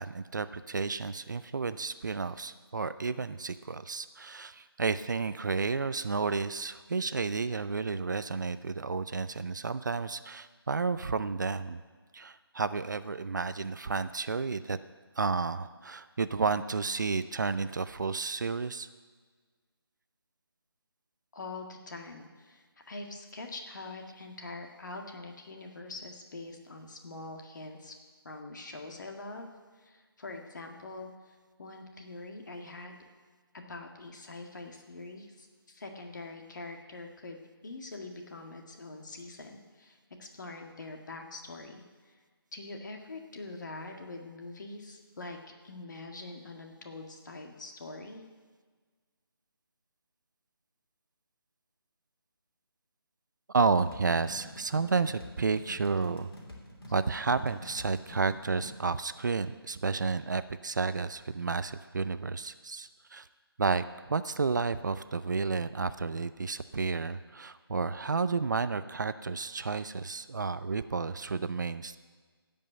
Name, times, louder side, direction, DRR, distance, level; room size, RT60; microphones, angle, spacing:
voice 1, 0.0-11.8 12.1-14.8 15.2-18.9 53.5-56.3 56.9-63.3 63.6-72.0, right 4 dB, 50° right, 13 dB, 0.5 m, -31 dB
voice 2, 21.3-28.0 28.2-29.5 29.7-33.1 33.5-42.2 42.5-45.4 45.6-48.2, left 3 dB, 50° left, 3 dB, 1.8 m, -44 dB
sound 1, 53.6-58.7, equal, 65° left, 3.1 m, -47 dB
16.5 x 5.4 x 7.9 m, 1.5 s
figure-of-eight pair, 165°, 13 cm